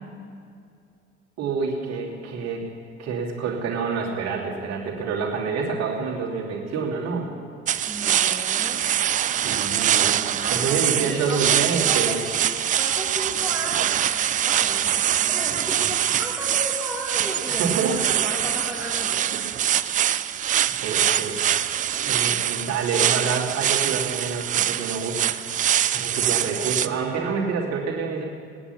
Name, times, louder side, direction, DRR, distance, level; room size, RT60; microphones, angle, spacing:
voice 1, 1.4-2.6 3.0-7.3 9.4-10.2 10.5-12.2 15.5-15.9 17.5-18.1 19.3-19.4 20.8-21.4 22.1-25.4 25.9-28.2, right 5 dB, 45° right, -2 dB, 2.8 m, -27 dB
sound 1, 7.7-26.9, right 10 dB, 25° right, 0.4 m, -24 dB
voice 2, 7.9-8.9 10.2-11.4 11.9-12.4 12.8-19.3, right 1 dB, ahead, -5 dB, 2.3 m, -35 dB
18.5 x 9.9 x 5.9 m, 2.4 s
figure-of-eight pair, 60°, 37 cm